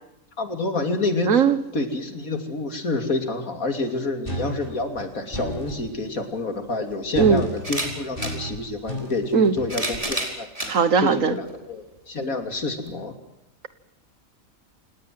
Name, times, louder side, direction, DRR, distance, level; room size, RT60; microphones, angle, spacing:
voice 1, 0.4-1.4 1.7-13.2, left 2 dB, 75° left, 7 dB, 3.4 m, -28 dB
voice 2, 1.3-1.6 7.2-7.4 9.3-9.5 10.7-11.4, right 6 dB, 70° right, 14 dB, 1.7 m, -18 dB
sound 1, 4.3-5.8 7.1-10.0, equal, 40° left, 6.9 m, -33 dB
sound 2, 6.2-6.3 7.6-8.4 9.4-10.7 11.5-11.6 12.9-13.0, right 1 dB, 25° right, 4.7 m, -29 dB
28.5 x 18.5 x 7.7 m, 0.89 s
omnidirectional pair, 1.5 m